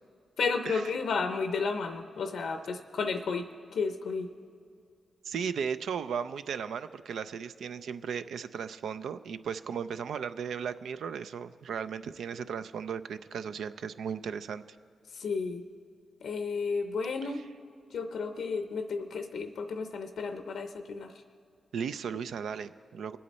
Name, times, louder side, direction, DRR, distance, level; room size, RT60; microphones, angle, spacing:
voice 1, 0.4-4.3 15.1-15.6 16.2-17.4 17.9-21.1, left 4 dB, 80° left, 7 dB, 0.6 m, -32 dB
voice 2, 5.2-14.6 17.2-17.3 21.7-23.2, right 7 dB, 85° right, 12 dB, 0.4 m, -36 dB
22.5 x 8.5 x 4.1 m, 2.4 s
cardioid pair, 60°, 0 cm